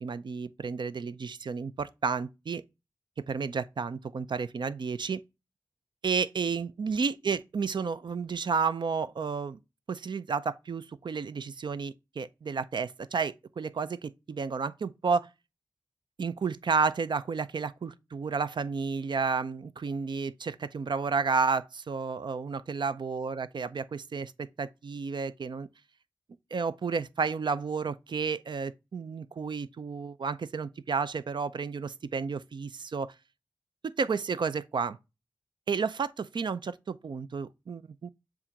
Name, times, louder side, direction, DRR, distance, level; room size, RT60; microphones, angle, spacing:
voice 1, 0.0-2.6 3.3-5.2 6.0-9.6 9.9-15.3 16.2-25.7 26.5-33.1 33.8-35.0 35.7-38.1, right 5 dB, 75° right, 0.5 m, -31 dB
7.2 x 2.5 x 5.1 m
cardioid pair, 50°, 8 cm